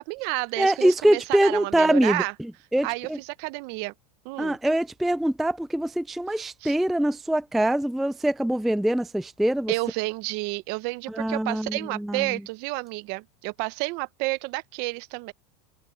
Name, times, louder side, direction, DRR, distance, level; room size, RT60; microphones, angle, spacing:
voice 1, 0.0-2.3 2.8-3.9 4.2-4.6 6.6-6.7 9.7-15.3, right 24 dB, 50° right, 0.9 m, -30 dB
voice 2, 0.6-3.2 4.4-9.7 11.1-12.4, right 1 dB, ahead, 0.3 m, -24 dB
supercardioid pair, 140°, 21 cm